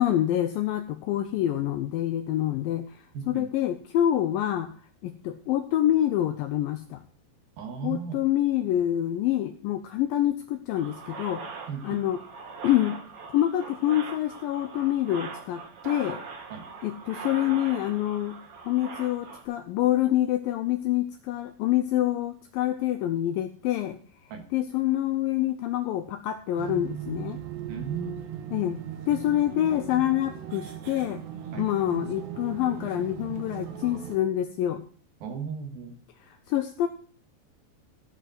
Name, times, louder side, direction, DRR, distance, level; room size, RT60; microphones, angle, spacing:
voice 1, 0.0-2.9 3.3-4.7 5.0-7.0 7.8-11.4 11.8-12.2 12.6-13.0 13.3-16.2 16.8-18.4 18.7-24.0 24.5-27.4 28.5-28.8 29.1-31.2 31.6-34.8 36.3-36.9, left 12 dB, 80° left, 8 dB, 2.1 m, -26 dB
voice 2, 3.1-3.5 7.6-8.2 11.7-12.1 16.5-16.7 24.3-24.4 27.7-28.1 31.5-31.7 35.2-36.0, right 6 dB, 65° right, 5 dB, 3.2 m, -36 dB
sound 1, 10.8-19.4, right 5 dB, 50° right, 2.0 m, -41 dB
sound 2, 26.6-34.2, right 11 dB, 90° right, 3.4 m, -38 dB
14.5 x 5.5 x 6.3 m, 0.43 s
omnidirectional pair, 4.7 m